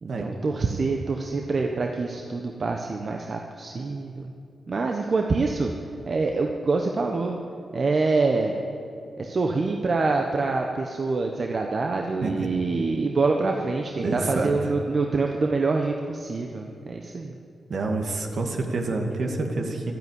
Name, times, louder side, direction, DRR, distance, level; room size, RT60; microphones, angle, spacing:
voice 1, 0.0-4.3 4.7-5.7 6.1-7.4 7.7-8.5 9.2-17.4, right 3 dB, 50° right, 2 dB, 1.0 m, -25 dB
voice 2, 14.0-14.7 17.7-19.9, right 3 dB, 70° right, 3 dB, 2.1 m, -28 dB
12.5 x 12.0 x 9.6 m, 2.5 s
cardioid pair, 75°, 0 cm